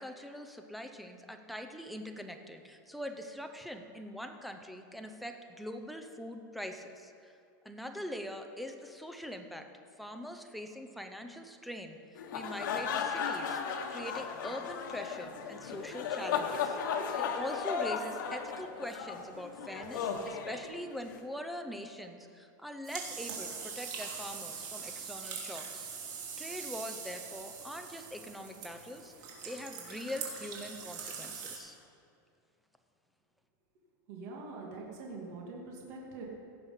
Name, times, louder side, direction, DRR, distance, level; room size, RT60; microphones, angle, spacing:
voice 1, 0.0-7.3 7.6-9.6 10.0-12.0 12.3-13.6 13.9-16.8 17.1-25.9 26.4-29.1 29.4-31.8, equal, ahead, 5 dB, 0.6 m, -43 dB
sound 1, 12.2-21.2, left 6 dB, 85° left, 1.2 m, -35 dB
sound 2, 22.8-31.6, right 6 dB, 70° right, 2.8 m, -42 dB
voice 2, 34.1-36.3, right 3 dB, 50° right, -2 dB, 2.2 m, -44 dB
16.5 x 6.8 x 5.7 m, 2.5 s
supercardioid pair, 170°, 10 cm